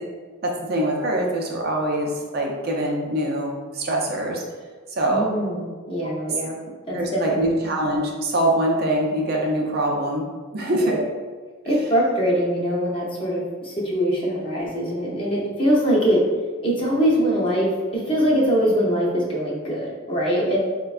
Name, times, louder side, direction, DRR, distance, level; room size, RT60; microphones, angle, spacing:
voice 1, 0.4-4.4 5.0-5.3 6.0-6.1 6.9-10.3 10.5-11.0, right 1 dB, 50° right, -1 dB, 0.5 m, -23 dB
voice 2, 5.1-6.6 6.9-7.4 10.8-11.0 11.6-16.2 16.6-20.6, equal, 25° left, -5 dB, 0.6 m, -22 dB
4.4 x 2.2 x 2.4 m, 1.4 s
head